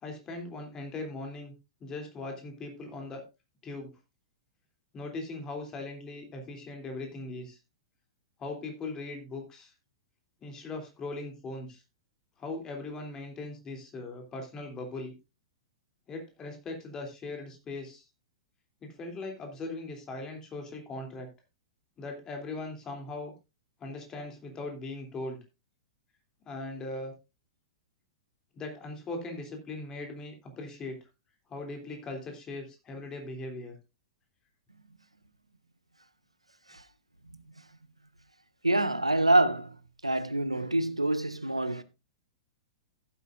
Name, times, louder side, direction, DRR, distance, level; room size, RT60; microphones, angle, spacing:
voice 1, 0.0-1.5 1.8-3.2 3.6-3.9 4.9-7.6 8.4-9.7 10.4-11.8 12.4-15.1 16.1-18.0 18.8-21.3 22.0-23.3 23.8-25.4 26.4-27.1 28.5-31.0 31.5-33.7, left 2 dB, 20° left, 3.0 m, -39 dB
voice 2, 38.6-39.7 40.0-41.8, right 1 dB, 90° right, 0.7 m, -26 dB
15.0 x 8.3 x 2.5 m
figure-of-eight pair, 105°, 3 cm